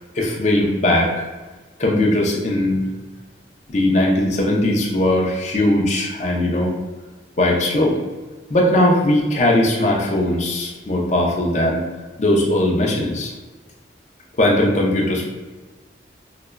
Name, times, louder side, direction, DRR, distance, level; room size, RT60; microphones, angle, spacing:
voice 1, 0.1-1.2 1.8-2.8 3.7-6.7 7.4-8.0 8.5-11.8 12.2-13.3 14.4-15.3, left 1 dB, 40° left, -2 dB, 0.5 m, -19 dB
4.8 x 2.2 x 2.2 m, 1.3 s
head